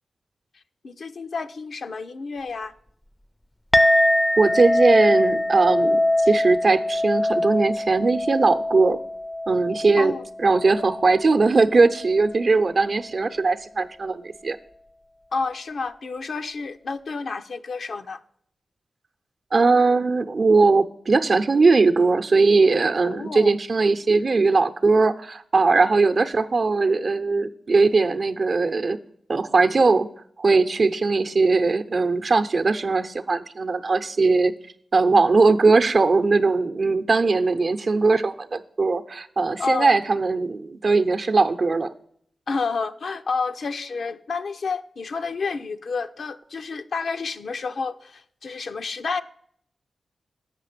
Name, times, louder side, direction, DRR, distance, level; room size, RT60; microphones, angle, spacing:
voice 1, 0.8-2.7 10.0-10.2 15.3-18.2 23.0-23.5 39.6-40.0 42.5-49.2, left 4 dB, 75° left, 7 dB, 0.5 m, -30 dB
Chink clink, 3.7-12.4, left 1 dB, 15° left, 0.4 m, -23 dB
voice 2, 4.4-9.0 9.5-10.1 10.4-14.6 19.5-29.0 29.3-30.1 30.4-34.5 34.9-41.9, right 3 dB, 60° right, 9 dB, 0.7 m, -20 dB
8.2 x 5.8 x 6.7 m, 0.66 s
cardioid pair, 45°, 0 cm